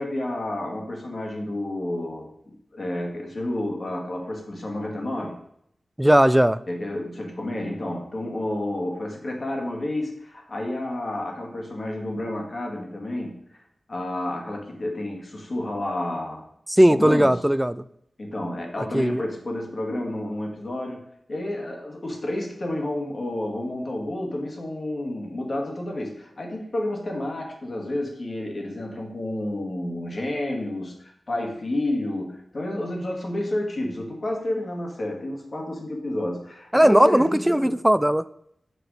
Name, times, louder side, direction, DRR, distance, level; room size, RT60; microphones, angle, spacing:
voice 1, 0.0-5.4 6.7-13.4 13.9-16.4 16.9-17.4 18.2-37.8, left 1 dB, 55° left, 0 dB, 1.9 m, -30 dB
voice 2, 6.0-6.6 16.7-17.8 18.9-19.2 36.7-38.2, equal, 10° right, 15 dB, 0.3 m, -18 dB
6.2 x 4.8 x 4.9 m, 0.71 s
wide cardioid pair, 65°, 0 cm